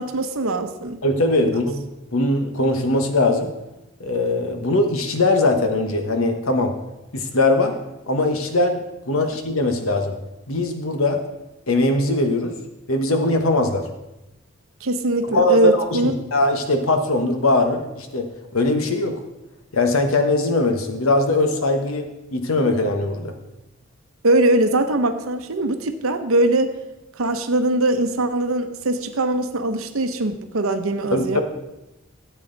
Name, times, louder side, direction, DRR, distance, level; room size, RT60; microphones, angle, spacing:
voice 1, 0.0-1.0 14.8-16.1 24.2-26.7 27.1-31.4, right 2 dB, 90° right, 7 dB, 0.9 m, -21 dB
voice 2, 1.0-1.9 2.1-3.5 4.0-6.7 7.1-7.7 8.1-10.2 10.5-11.2 11.7-12.5 12.9-13.9 15.3-19.2 19.7-22.0 22.3-23.3 31.1-31.4, left 2 dB, 90° left, 5 dB, 1.3 m, -20 dB
13.5 x 8.4 x 4.0 m, 0.96 s
head